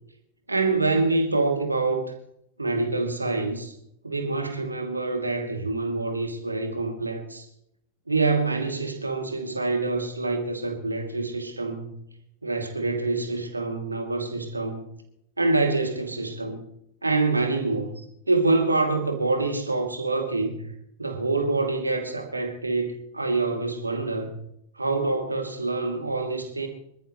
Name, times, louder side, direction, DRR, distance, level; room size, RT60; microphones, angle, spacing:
voice 1, 0.5-2.1 2.6-3.7 4.0-7.4 8.1-11.9 12.4-14.9 15.4-16.6 17.0-20.7 21.0-24.3 24.8-26.7, right 3 dB, 80° right, 4 dB, 2.6 m, -26 dB
26.0 x 14.0 x 3.1 m, 0.76 s
figure-of-eight pair, 90°, 0 cm